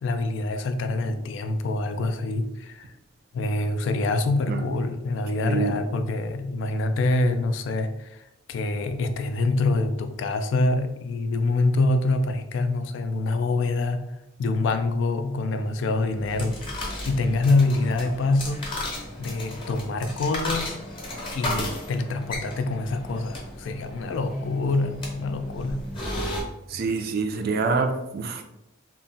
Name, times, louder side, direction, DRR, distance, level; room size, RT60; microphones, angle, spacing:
voice 1, 0.0-2.9 3.3-14.1 14.4-16.6 17.0-18.6 19.2-20.8 21.3-25.9, left 2 dB, 70° left, 9 dB, 0.3 m, -25 dB
voice 2, 5.4-5.8 26.7-28.4, right 4 dB, 50° right, 6 dB, 0.3 m, -26 dB
sound 1, 16.1-26.4, left 1 dB, 25° left, 0.7 m, -34 dB
2.2 x 2.1 x 3.8 m, 0.90 s
head